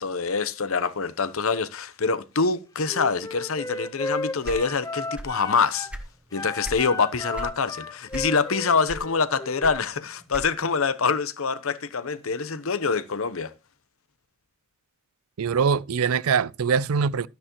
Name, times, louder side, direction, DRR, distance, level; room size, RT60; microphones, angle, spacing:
voice 1, 0.0-5.9 6.3-13.5, left 5 dB, 75° left, 0.9 m, -25 dB
Wind instrument woodwind instrument, 2.9-5.9 6.3-9.7, left 2 dB, 15° left, 0.9 m, -34 dB
sound 1, 4.4-5.4 5.7-6.9 7.3-7.6 8.1-8.5 8.9-10.8, right 1 dB, 5° right, 1.1 m, -37 dB
voice 2, 15.4-17.3, right 6 dB, 85° right, 0.4 m, -23 dB
12.5 x 10.5 x 3.0 m
head